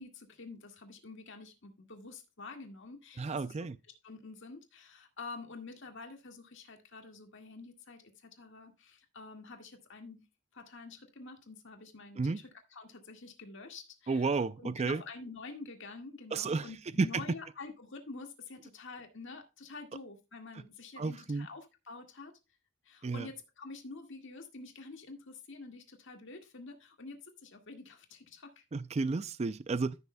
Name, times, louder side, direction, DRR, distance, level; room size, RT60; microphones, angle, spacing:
voice 1, 0.0-3.7 4.0-10.2 10.5-22.3 22.8-28.6, left 3 dB, 60° left, 1.8 m, -48 dB
voice 2, 3.2-3.8 12.2-12.4 14.1-15.0 16.3-16.7 17.0-17.2 21.0-21.5 23.0-23.3 28.7-30.0, right 4 dB, 30° right, 0.4 m, -32 dB
14.0 x 6.8 x 2.2 m
head